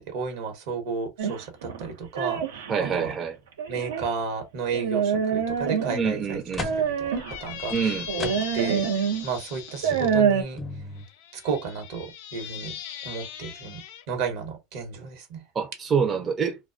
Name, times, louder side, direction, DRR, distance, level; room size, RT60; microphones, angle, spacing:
voice 1, 0.0-2.6 2.9-3.2 3.7-7.9 8.2-8.8 9.2-10.6 11.3-12.7 13.0-13.8 14.1-15.4, right 5 dB, 70° right, 1.0 m, -33 dB
sound 1, 1.2-3.0 3.6-4.1 4.7-6.1 6.6-7.4 8.1-9.3 9.7-10.4, right 7 dB, 90° right, 0.5 m, -26 dB
voice 2, 2.7-3.4 5.9-6.7 7.7-8.1 15.5-16.6, right 6 dB, 30° right, 0.5 m, -26 dB
sound 2, 5.5-5.6 6.1-8.9 9.3-9.4 9.8-11.0, left 2 dB, 20° left, 0.5 m, -38 dB
Squeak, 7.1-10.1 11.0-14.0, left 10 dB, 75° left, 0.5 m, -39 dB
2.3 x 2.2 x 2.4 m
supercardioid pair, 110°, 0 cm